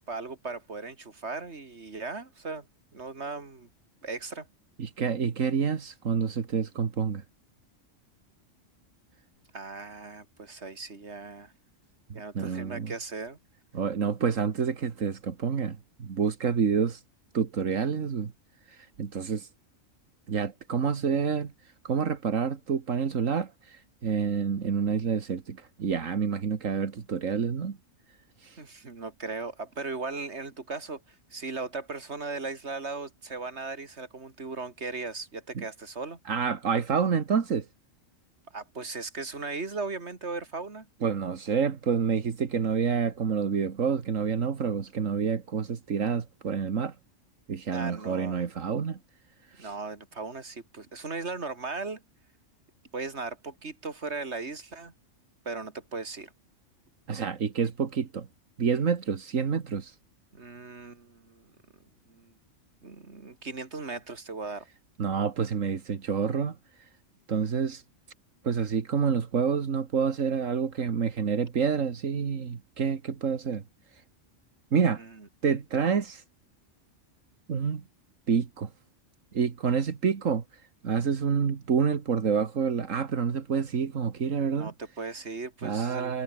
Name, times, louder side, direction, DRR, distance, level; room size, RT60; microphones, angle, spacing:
voice 1, 0.0-2.7 2.9-3.7 4.0-4.5 9.5-11.5 12.1-13.4 28.6-36.2 38.5-40.9 47.7-48.4 49.6-52.0 52.9-54.9 55.4-56.3 60.3-61.5 62.1-62.3 62.8-64.7 75.0-75.3 84.5-86.2, right 3 dB, 60° right, 3.0 m, -37 dB
voice 2, 4.8-7.2 12.1-12.9 13.7-17.0 17.3-18.3 18.7-19.5 20.3-21.5 21.8-27.8 28.4-28.6 35.6-35.7 36.3-37.7 41.0-47.0 47.5-49.0 49.5-49.7 57.1-58.3 58.6-60.0 65.0-66.9 67.3-67.8 68.4-73.6 74.7-75.0 75.4-76.2 77.5-77.8 78.3-78.7 79.3-84.7 85.6-86.2, right 6 dB, 80° right, 1.9 m, -28 dB
omnidirectional pair, 1.3 m